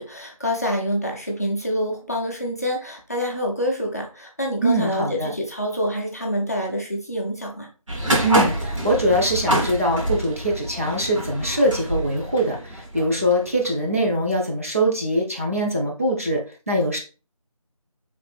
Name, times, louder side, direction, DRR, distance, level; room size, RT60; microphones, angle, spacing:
voice 1, 0.0-7.7, equal, 25° left, -1 dB, 0.6 m, -26 dB
voice 2, 4.6-5.3 8.2-16.4 16.7-17.0, equal, 25° right, -3 dB, 0.6 m, -22 dB
sound 1, 7.9-13.7, right 1 dB, 60° right, 1.7 m, -26 dB
4.5 x 3.3 x 3.3 m, 0.35 s
figure-of-eight pair, 170°, 18 cm